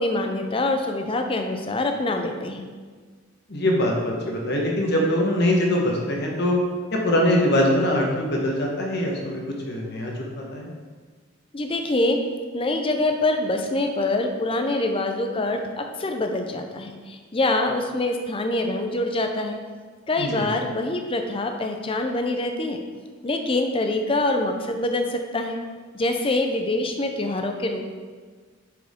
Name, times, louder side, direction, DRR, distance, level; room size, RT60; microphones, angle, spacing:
voice 1, 0.0-2.6 11.5-12.2 12.5-19.6 20.1-22.8 23.2-25.6 25.9-27.8, left 2 dB, 25° left, 4 dB, 0.5 m, -25 dB
voice 2, 3.5-6.5 6.9-10.7 20.2-20.4, left 1 dB, 55° left, -1 dB, 1.2 m, -23 dB
7.4 x 4.7 x 3.6 m, 1.5 s
head